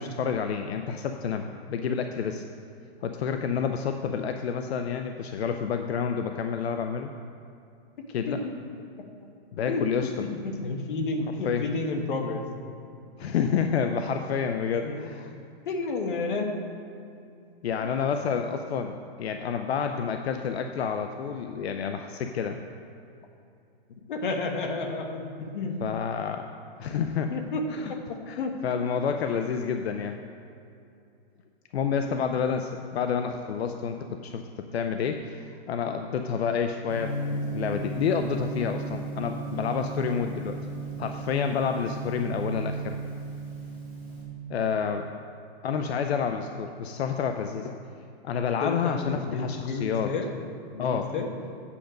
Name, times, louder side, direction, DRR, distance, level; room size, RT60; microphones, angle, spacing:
voice 1, 0.0-2.4 3.0-7.1 8.1-8.4 9.5-10.3 11.4-11.7 13.2-15.3 17.6-22.6 25.8-26.5 26.8-27.3 27.7-27.9 28.3-30.2 31.7-40.6 41.0-43.0 44.5-45.1 45.6-47.8 48.2-50.1 50.8-51.1, left 6 dB, 80° left, 6 dB, 0.6 m, -29 dB
voice 2, 8.0-8.6 9.7-12.4 14.8-15.1 15.6-16.5 23.9-25.8 27.3-28.6 48.6-50.3 50.7-51.3, left 3 dB, 55° left, 4 dB, 1.2 m, -31 dB
Gong, 36.9-44.2, right 2 dB, 5° left, 1.4 m, -35 dB
8.5 x 6.5 x 5.1 m, 2.6 s
hypercardioid pair, 170°, 31 cm